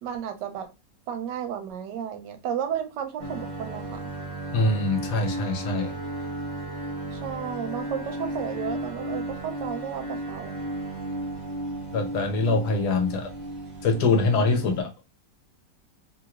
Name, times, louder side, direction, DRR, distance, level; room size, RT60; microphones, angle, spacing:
voice 1, 0.0-0.7 1.1-4.1 7.1-10.5, right 8 dB, 85° right, 1.2 m, -33 dB
sound 1, 3.2-14.8, right 1 dB, 45° right, 0.5 m, -34 dB
voice 2, 4.5-5.9 11.9-13.3 13.8-14.9, left 3 dB, 70° left, 1.2 m, -24 dB
3.0 x 2.9 x 2.3 m
omnidirectional pair, 1.9 m